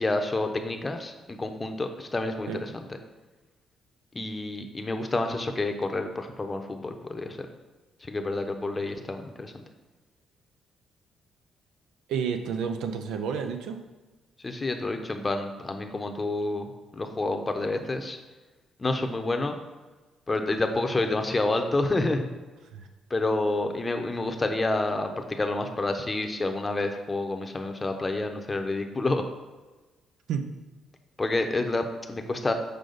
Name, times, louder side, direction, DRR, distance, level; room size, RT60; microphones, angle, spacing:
voice 1, 0.0-2.8 4.1-7.4 8.1-9.6 14.4-18.2 18.8-19.6 20.3-22.3 23.1-29.2 31.2-32.5, left 2 dB, 25° left, 5 dB, 0.7 m, -29 dB
voice 2, 12.1-13.8 22.7-22.9 30.3-30.5, right 6 dB, 85° right, 7 dB, 0.5 m, -30 dB
6.6 x 4.8 x 3.9 m, 1.2 s
cardioid pair, 90°, 0 cm